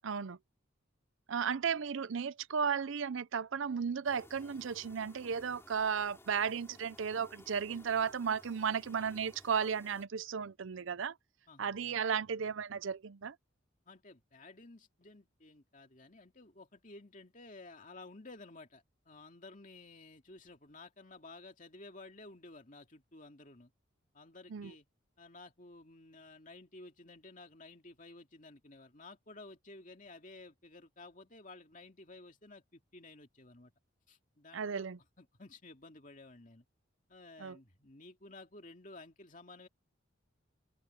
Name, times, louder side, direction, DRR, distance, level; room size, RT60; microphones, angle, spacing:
voice 1, 0.0-0.4 1.3-11.1 11.6-13.3 24.5-24.7 34.5-35.0 37.4-37.6, right 6 dB, 70° right, 0.5 m, -34 dB
sound 1, 4.0-10.1, left 1 dB, 10° left, 6.0 m, -58 dB
voice 2, 13.9-23.7 24.1-24.9 25.2-33.7 34.1-34.9 35.2-36.7 37.1-39.7, left 2 dB, 40° left, 2.4 m, -54 dB
open air
head